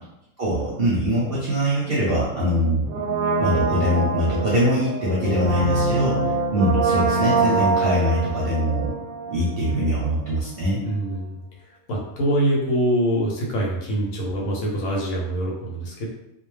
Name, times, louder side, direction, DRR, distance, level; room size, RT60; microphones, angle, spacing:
voice 1, 0.4-2.9 3.4-8.9 9.3-10.8, equal, 55° right, -7 dB, 0.7 m, -23 dB
Brass instrument, 2.9-9.7 10.0-10.1, right 3 dB, 85° right, 1.0 m, -24 dB
voice 2, 10.8-11.4 11.9-16.1, right 1 dB, 85° left, -3 dB, 1.1 m, -24 dB
2.3 x 2.1 x 3.1 m, 0.86 s
omnidirectional pair, 1.4 m